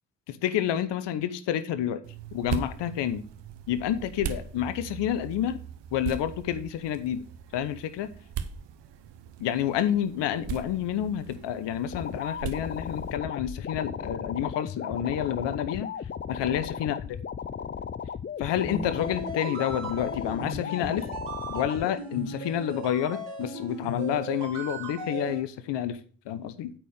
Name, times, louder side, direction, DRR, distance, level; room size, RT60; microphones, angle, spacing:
voice 1, 0.3-2.0 2.3-3.2 3.7-5.6 5.9-7.2 7.5-8.1 9.4-17.0 18.4-21.1 21.5-26.0 26.3-26.7, left 10 dB, 75° left, 0.8 m, -29 dB
sound 1, 2.0-13.2, right 9 dB, 70° right, 0.9 m, -39 dB
sound 2, 11.9-21.9, left 7 dB, 25° left, 0.5 m, -36 dB
sound 3, 18.5-25.4, right 1 dB, 85° right, 2.1 m, -37 dB
9.0 x 4.4 x 6.4 m
hypercardioid pair, 45°, 43 cm